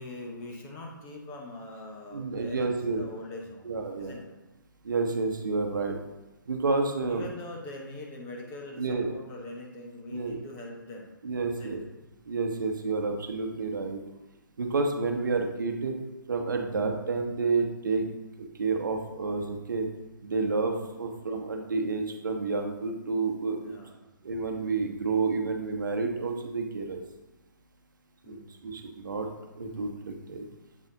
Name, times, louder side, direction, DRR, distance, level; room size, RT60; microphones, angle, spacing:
voice 1, 0.0-4.4 7.0-11.1 11.5-11.9 20.8-21.1 23.6-24.0 28.2-28.8, left 1 dB, 20° left, 0 dB, 1.0 m, -43 dB
voice 2, 2.1-3.0 3.6-4.2 4.8-6.0 6.5-7.2 8.8-9.1 10.1-10.4 11.2-11.8 12.3-14.0 14.6-15.9 16.3-18.1 18.4-19.9 20.2-23.7 24.2-27.0 28.3-28.4 28.6-29.3 29.5-30.4, right 4 dB, 65° right, 4 dB, 0.9 m, -30 dB
7.4 x 4.1 x 3.8 m, 1.1 s
figure-of-eight pair, 140°, 11 cm